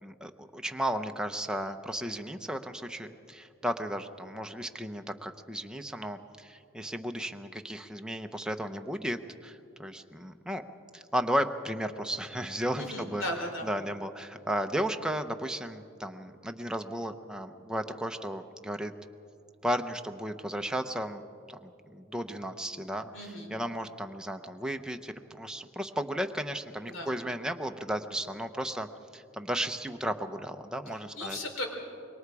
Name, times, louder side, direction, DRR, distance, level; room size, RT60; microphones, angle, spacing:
voice 1, 0.0-10.6 10.9-13.2 13.6-18.9 19.6-21.2 21.5-31.4, equal, 5° right, 6 dB, 0.7 m, -34 dB
voice 2, 12.8-13.7 23.1-23.5 26.8-27.1 31.2-31.6, left 1 dB, 70° left, 3 dB, 3.4 m, -36 dB
26.0 x 22.5 x 4.8 m, 2.6 s
head